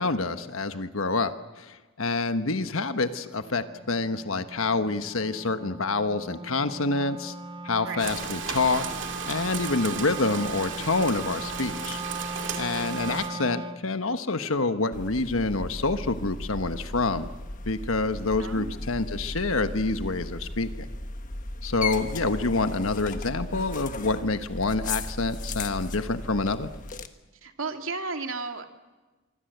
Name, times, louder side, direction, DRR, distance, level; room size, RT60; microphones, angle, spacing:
voice 1, 0.0-7.3 7.6-8.8 9.3-17.3 17.6-20.8 21.6-26.7, left 3 dB, 75° left, 10 dB, 1.3 m, -27 dB
Wind instrument woodwind instrument, 2.3-13.9, right 3 dB, 25° right, 1.1 m, -39 dB
voice 2, 7.8-8.1 18.4-18.9 27.4-28.7, right 3 dB, 75° right, 5 dB, 2.5 m, -34 dB
Rain, 8.0-13.3, right 5 dB, 60° right, 2.5 m, -35 dB
Digital machine (Raining Outside), 14.9-27.1, left 2 dB, 40° left, 1.4 m, -36 dB
25.0 x 25.0 x 8.0 m, 1.2 s
head